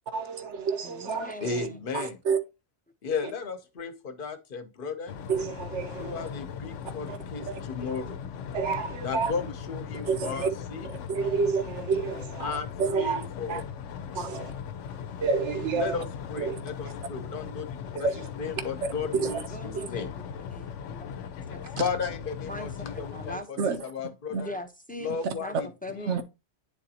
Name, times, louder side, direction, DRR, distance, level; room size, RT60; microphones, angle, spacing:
voice 1, 0.1-1.7 1.9-2.4 5.3-6.3 7.1-7.2 7.5-7.6 8.5-9.3 10.1-10.5 11.1-13.2 13.5-13.6 14.1-14.5 15.2-16.0 16.4-16.6 17.9-18.3 19.1-19.4 19.8-19.9 23.6-23.8 24.3-24.4 25.2-25.3 26.1-26.2, right 5 dB, 75° right, 1.2 m, -29 dB
voice 2, 0.8-1.8 19.5-21.2 21.5-21.6 22.5-23.8 24.3-26.2, left 1 dB, 10° left, 0.6 m, -41 dB
voice 3, 1.4-2.2 3.0-5.1 6.0-8.2 9.0-10.9 12.4-12.7 13.0-13.6 15.8-17.7 18.0-18.1 18.4-20.1 21.8-24.5 25.0-26.2, left 5 dB, 50° left, 1.0 m, -35 dB
sound 1, 5.1-23.4, left 7 dB, 90° left, 1.0 m, -39 dB
9.4 x 3.9 x 2.8 m
omnidirectional pair, 1.2 m